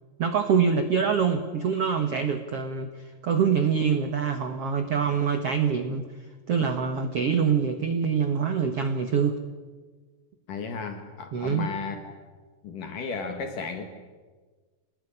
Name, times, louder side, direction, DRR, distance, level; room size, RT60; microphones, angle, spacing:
voice 1, 0.2-6.0 6.5-9.4 11.3-11.7, right 6 dB, 90° right, 8 dB, 1.3 m, -25 dB
voice 2, 10.5-12.1 12.6-13.8, left 5 dB, 55° left, 7 dB, 2.9 m, -34 dB
28.0 x 19.0 x 9.9 m, 1.4 s
omnidirectional pair, 5.0 m